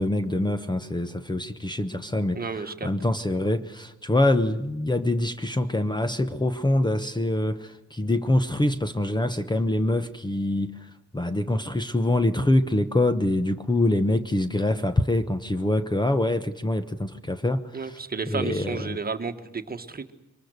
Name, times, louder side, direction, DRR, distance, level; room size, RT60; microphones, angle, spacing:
voice 1, 0.0-18.0 18.3-19.0, left 1 dB, 15° left, 10 dB, 1.0 m, -25 dB
voice 2, 2.3-2.9 17.7-20.1, right 4 dB, 30° right, 8 dB, 1.7 m, -32 dB
24.0 x 20.0 x 8.1 m, 0.93 s
wide cardioid pair, 125°, 30 cm